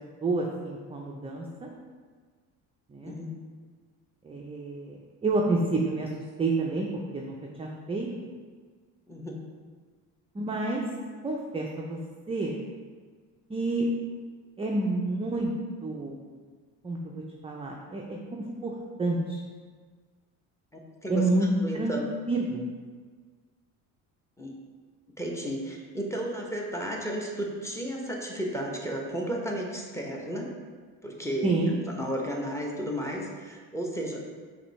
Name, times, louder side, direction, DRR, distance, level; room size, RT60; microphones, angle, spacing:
voice 1, 0.2-1.7 2.9-3.2 4.2-6.1 6.4-6.9 7.1-8.1 10.3-10.9 11.2-12.0 12.3-12.6 13.5-13.9 14.6-15.5 15.8-16.2 16.8-19.4 21.1-21.5 21.7-21.9 22.3-22.7 31.4-31.8, right 2 dB, 15° right, -1 dB, 0.4 m, -29 dB
voice 2, 20.7-21.3 21.6-22.1 24.4-24.5 25.2-30.5 31.0-31.5 32.0-34.2, equal, 5° left, -1 dB, 0.7 m, -33 dB
5.1 x 2.7 x 3.2 m, 1.5 s
supercardioid pair, 80°, 40 cm